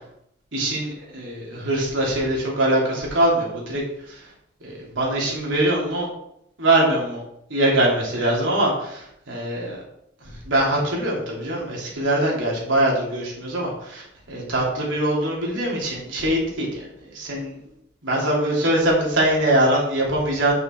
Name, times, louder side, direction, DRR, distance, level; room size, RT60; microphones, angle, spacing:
voice 1, 0.5-3.8 4.6-6.1 6.6-7.2 7.5-9.8 10.5-16.8 17.1-17.5 18.0-20.5, right 1 dB, 80° right, -2 dB, 3.0 m, -22 dB
8.7 x 5.8 x 4.5 m, 0.75 s
head